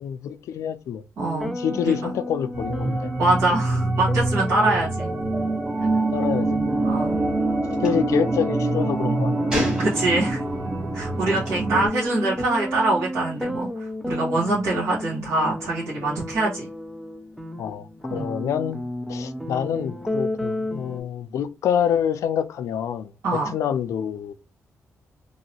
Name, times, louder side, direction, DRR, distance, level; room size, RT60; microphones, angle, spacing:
voice 1, 0.0-1.0 1.6-3.1 4.6-4.7 6.1-6.6 7.7-9.6 11.2-11.4 17.6-18.8 19.1-24.3, left 8 dB, 80° left, 0.3 m, -27 dB
sound 1, 1.2-21.0, left 1 dB, ahead, 0.3 m, -33 dB
voice 2, 1.2-1.5 1.8-2.1 3.2-5.1 6.8-7.1 7.9-8.0 9.8-10.4 10.9-16.7 18.1-18.3 23.2-23.5, right 2 dB, 75° right, 1.3 m, -24 dB
sound 2, 2.5-11.9, right 2 dB, 45° right, 1.2 m, -25 dB
Gunshot gunfire, 7.7-7.9 9.5-10.5 11.4-11.6, left 1 dB, 20° right, 1.7 m, -28 dB
2.9 x 2.7 x 2.8 m
wide cardioid pair, 180°, 5 cm